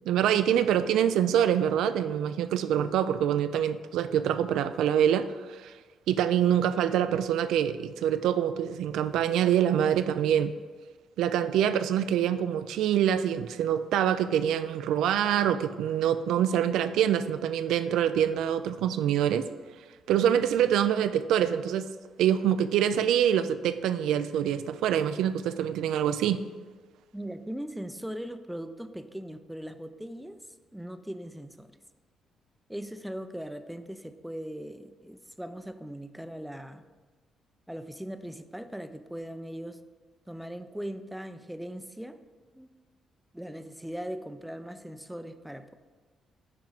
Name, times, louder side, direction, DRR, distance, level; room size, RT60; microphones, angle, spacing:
voice 1, 0.1-5.7 6.1-10.5 11.2-19.5 20.1-21.8 22.2-26.4, right 9 dB, 85° right, 11 dB, 0.3 m, -25 dB
voice 2, 27.1-30.4 30.7-31.7 32.7-36.8 37.7-39.8 40.3-42.2 42.5-42.7 43.3-45.7, equal, 5° right, 10 dB, 0.4 m, -39 dB
8.8 x 4.7 x 4.0 m, 1.3 s
cardioid pair, 90°, 0 cm